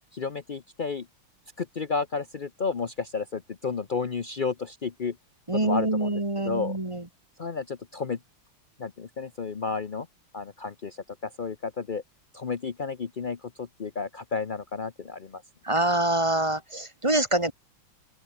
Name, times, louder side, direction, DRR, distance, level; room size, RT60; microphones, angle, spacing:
voice 1, 0.1-1.1 1.6-5.2 5.5-6.8 7.4-8.2 8.8-10.1 10.3-12.0 12.3-15.4, left 5 dB, 70° left, 0.4 m, -32 dB
voice 2, 5.5-7.0 15.7-17.5, right 1 dB, 15° right, 2.0 m, -25 dB
open air
omnidirectional pair, 2.4 m